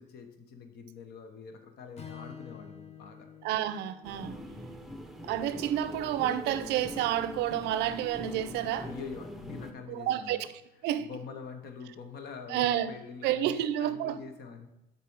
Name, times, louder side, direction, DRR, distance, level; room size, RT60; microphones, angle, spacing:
voice 1, 0.0-3.3 4.3-5.0 8.8-10.4 11.0-14.7, left 5 dB, 70° left, 1.0 m, -45 dB
Strum, 2.0-6.3, left 7 dB, 40° left, 0.8 m, -50 dB
voice 2, 3.4-4.4 5.2-8.9 9.9-10.5 10.8-11.1 12.5-12.9 13.2-14.2, right 11 dB, 85° right, 0.5 m, -30 dB
sound 1, 4.0-9.7, equal, ahead, 0.6 m, -43 dB
6.8 x 4.2 x 4.6 m
cardioid pair, 110°, 17 cm